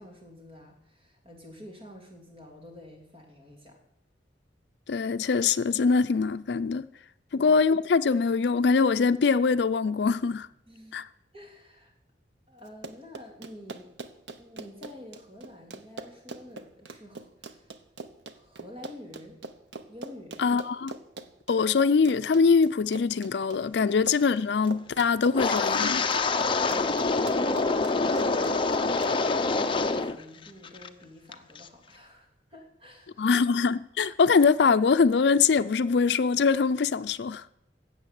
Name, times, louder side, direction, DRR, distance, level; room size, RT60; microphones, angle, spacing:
voice 1, 0.0-3.8 7.3-7.5 10.7-11.0 11.3-11.9 12.5-13.9 14.3-17.7 18.3-19.4 19.9-20.5 26.5-33.3, left 1 dB, 35° right, 3.1 m, -48 dB
voice 2, 4.9-6.9 7.3-10.5 10.9-11.0 20.4-20.9 21.5-26.1 33.2-37.4, left 5 dB, 65° left, 0.4 m, -23 dB
Run, 12.7-29.1, right 3 dB, 85° right, 1.0 m, -42 dB
Wind, 25.3-30.2 30.5-30.9 31.3-31.6, left 3 dB, 30° left, 0.7 m, -26 dB
12.5 x 7.8 x 8.3 m
head